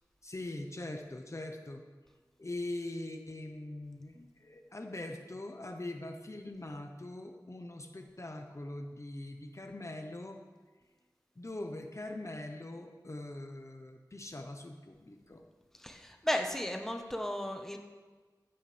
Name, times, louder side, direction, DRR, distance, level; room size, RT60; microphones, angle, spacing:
voice 1, 0.2-1.8 2.4-10.4 11.4-15.4, left 2 dB, 40° left, 4 dB, 1.0 m, -42 dB
voice 2, 15.8-17.8, equal, 5° left, 3 dB, 1.1 m, -34 dB
15.0 x 11.5 x 3.4 m, 1.4 s
wide cardioid pair, 65°, 8 cm